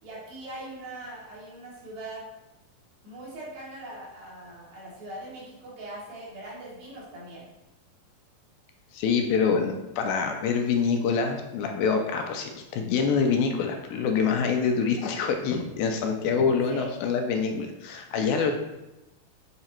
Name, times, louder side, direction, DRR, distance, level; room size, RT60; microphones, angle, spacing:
voice 1, 0.0-2.2 3.0-7.5 16.7-16.9, right 1 dB, 70° right, -7 dB, 3.8 m, -41 dB
voice 2, 8.9-18.5, left 5 dB, 80° left, 4 dB, 2.3 m, -25 dB
7.8 x 2.9 x 4.3 m, 0.97 s
omnidirectional pair, 4.4 m